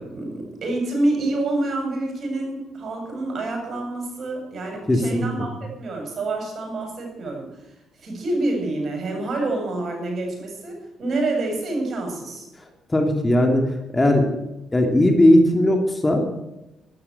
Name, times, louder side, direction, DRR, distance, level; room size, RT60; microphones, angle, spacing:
voice 1, 0.0-7.5 8.0-12.4, right 2 dB, 55° right, 2 dB, 7.6 m, -27 dB
voice 2, 4.9-5.5 12.9-14.3 14.7-16.3, left 1 dB, 20° left, 4 dB, 2.9 m, -18 dB
13.0 x 13.0 x 8.2 m, 0.95 s
cardioid pair, 75°, 0 cm